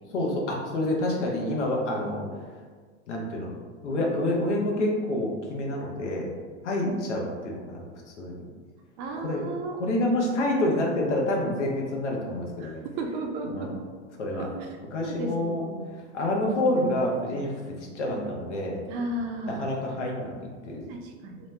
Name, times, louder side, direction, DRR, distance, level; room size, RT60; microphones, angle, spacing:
voice 1, 0.1-2.2 3.1-3.5 3.8-6.3 6.6-8.5 9.2-9.4 9.8-12.8 13.5-13.6 14.2-14.5 14.9-15.7 16.1-18.8 19.4-20.9, left 1 dB, 90° left, -1 dB, 0.8 m, -28 dB
voice 2, 9.0-9.9 12.6-13.7 14.4-14.5 15.0-15.9 18.0-18.3 18.9-19.8 20.9-21.5, right 2 dB, 45° right, 2 dB, 0.5 m, -34 dB
2.9 x 2.0 x 3.3 m, 1.5 s
hypercardioid pair, 120°, 35 cm